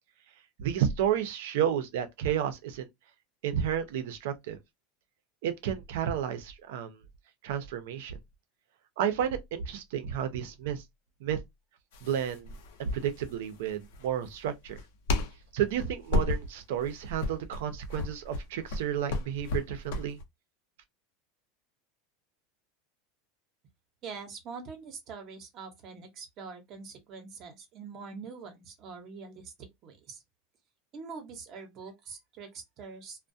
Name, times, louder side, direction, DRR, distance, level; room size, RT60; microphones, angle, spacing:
voice 1, 0.6-2.9 3.4-4.6 5.4-7.0 7.4-8.2 9.0-10.8 11.2-11.4 12.0-14.8 15.5-20.2, right 9 dB, 75° right, 0.5 m, -31 dB
sound 1, 11.9-20.2, left 2 dB, 80° left, 0.7 m, -33 dB
voice 2, 24.0-30.2 30.9-33.3, right 5 dB, 40° right, 0.7 m, -44 dB
2.3 x 2.1 x 2.6 m
supercardioid pair, 145°, 0 cm